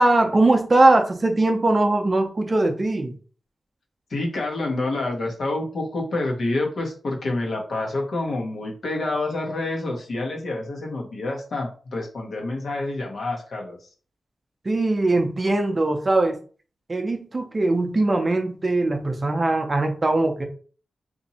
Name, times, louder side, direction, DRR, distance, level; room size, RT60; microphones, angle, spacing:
voice 1, 0.0-3.1 14.6-16.4 16.9-20.5, right 2 dB, 25° right, 4 dB, 0.5 m, -20 dB
voice 2, 4.1-13.9, left 2 dB, 65° left, 0 dB, 1.0 m, -28 dB
2.9 x 2.6 x 4.1 m, 0.39 s
wide cardioid pair, 165°, 0 cm